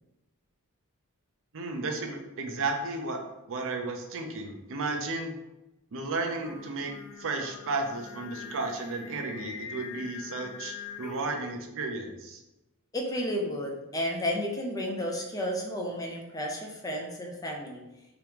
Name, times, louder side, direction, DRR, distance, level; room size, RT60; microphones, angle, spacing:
voice 1, 1.5-3.2 3.5-5.3 5.9-6.9 7.2-12.4, right 3 dB, 60° right, 3 dB, 0.6 m, -33 dB
Singing, 6.4-11.5, left 7 dB, 70° left, 0.4 m, -44 dB
voice 2, 12.9-17.8, equal, 15° left, 0 dB, 0.5 m, -32 dB
3.5 x 3.0 x 3.5 m, 0.97 s
head